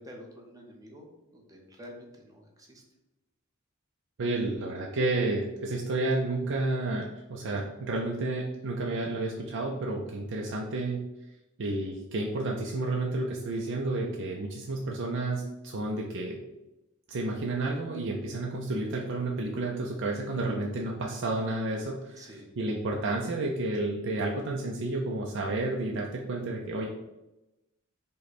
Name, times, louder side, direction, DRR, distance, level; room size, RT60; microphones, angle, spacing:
voice 1, 0.0-2.8 22.2-22.5, equal, 15° right, 0 dB, 0.8 m, -49 dB
voice 2, 4.2-11.0 11.6-16.4 17.1-22.2 22.6-26.9, right 2 dB, 60° right, -1 dB, 0.5 m, -31 dB
5.3 x 2.2 x 4.2 m, 0.96 s
head